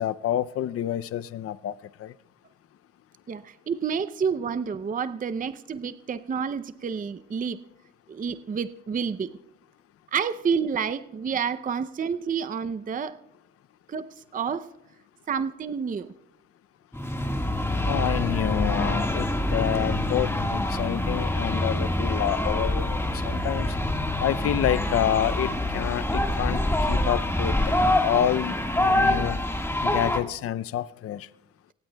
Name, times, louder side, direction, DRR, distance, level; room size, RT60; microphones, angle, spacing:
voice 1, 0.0-2.1 17.9-23.8 24.2-27.6 28.0-29.4 29.8-31.3, left 11 dB, 50° left, 15 dB, 0.5 m, -28 dB
voice 2, 3.3-7.6 8.1-9.3 10.1-13.2 13.9-14.7 15.3-16.1, right 6 dB, 25° right, 12 dB, 0.5 m, -29 dB
sound 1, 16.9-30.2, left 1 dB, 10° left, 1.6 m, -25 dB
25.5 x 18.5 x 2.3 m, 0.88 s
cardioid pair, 90°, 30 cm